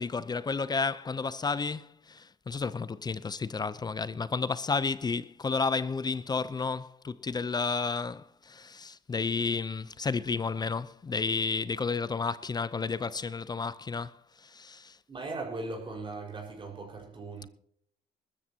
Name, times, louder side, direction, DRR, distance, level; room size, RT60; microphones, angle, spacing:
voice 1, 0.0-15.0, left 4 dB, 25° left, 0.6 m, -32 dB
voice 2, 15.1-17.5, right 3 dB, 30° right, 5.1 m, -39 dB
20.0 x 14.0 x 2.9 m
cardioid pair, 110°, 17 cm